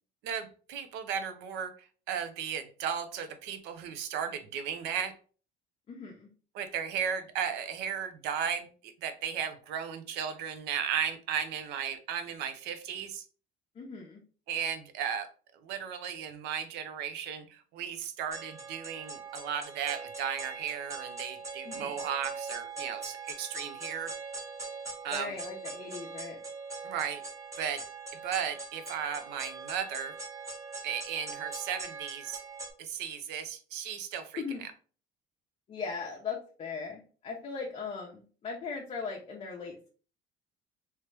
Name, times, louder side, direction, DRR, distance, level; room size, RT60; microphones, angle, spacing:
voice 1, 0.2-5.2 6.5-13.2 14.5-15.3 15.6-24.1 25.0-25.3 26.8-27.2 27.6-27.8 28.2-30.1 30.8-32.4 32.8-34.4, right 8 dB, 75° right, 9 dB, 0.7 m, -35 dB
voice 2, 5.9-6.3 13.7-14.2 21.6-21.9 25.1-26.4 34.4-34.6 35.7-39.9, left 5 dB, 35° left, -1 dB, 0.7 m, -39 dB
sound 1, 18.3-32.7, right 4 dB, 20° right, 1.0 m, -42 dB
3.1 x 2.9 x 3.3 m, 0.40 s
cardioid pair, 125°, 18 cm